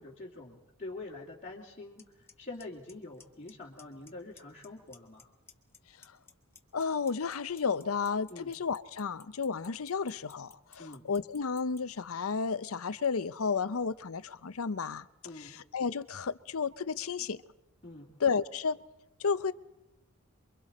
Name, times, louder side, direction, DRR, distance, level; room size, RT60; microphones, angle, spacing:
voice 1, 0.0-5.3 8.3-8.5 10.8-11.1 15.2-15.6 17.8-18.1, left 2 dB, 35° left, 2.6 m, -45 dB
Clock, 2.0-2.1 2.3-2.6 2.9-3.5 3.8-4.1 4.4-5.2 5.5-11.8, left 4 dB, 10° left, 1.3 m, -53 dB
voice 2, 6.7-15.1 15.4-17.4 18.2-18.8 19.2-19.5, left 5 dB, 80° left, 0.7 m, -32 dB
28.0 x 23.5 x 4.2 m
head